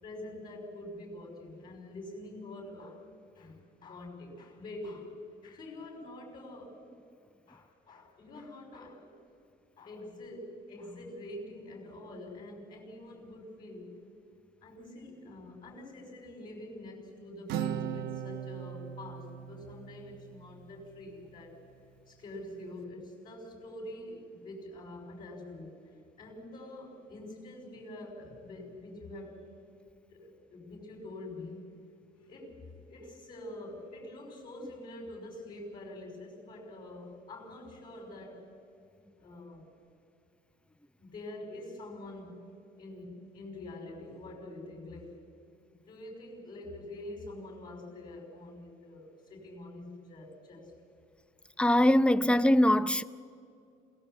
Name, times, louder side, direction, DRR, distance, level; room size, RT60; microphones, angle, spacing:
voice 1, 0.0-3.0 3.3-5.2 5.4-6.9 7.5-9.1 9.8-14.1 14.6-21.6 22.1-25.9 26.2-29.5 30.1-31.6 32.3-38.5 39.2-39.7 41.0-45.3 45.9-50.7, left 1 dB, 60° left, 5.6 m, -46 dB
Acoustic guitar, 17.5-21.2, right 9 dB, 85° right, 0.8 m, -39 dB
voice 2, 51.6-53.0, left 1 dB, 5° left, 0.5 m, -22 dB
27.0 x 17.5 x 7.9 m
cardioid pair, 110°, 17 cm